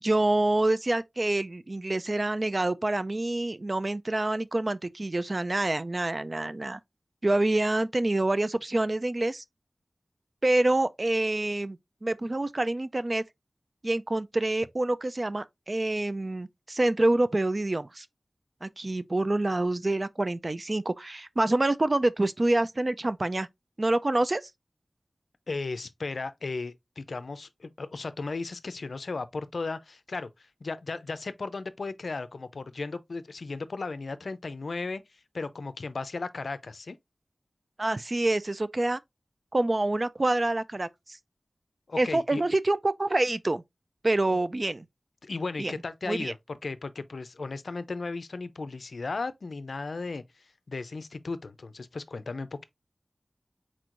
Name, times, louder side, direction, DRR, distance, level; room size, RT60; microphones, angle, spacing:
voice 1, 0.0-6.8 7.2-9.4 10.4-13.2 13.8-18.1 18.6-23.5 23.8-24.4 37.8-39.0 39.5-40.9 42.0-43.6 44.0-44.8 45.6-45.7 46.1-46.3, right 2 dB, 45° right, 0.3 m, -27 dB
voice 2, 25.5-37.0 41.9-42.4 44.3-44.4 45.2-46.4 46.6-52.6, left 3 dB, 90° left, 0.4 m, -36 dB
4.5 x 4.2 x 2.4 m
wide cardioid pair, 60°, 0 cm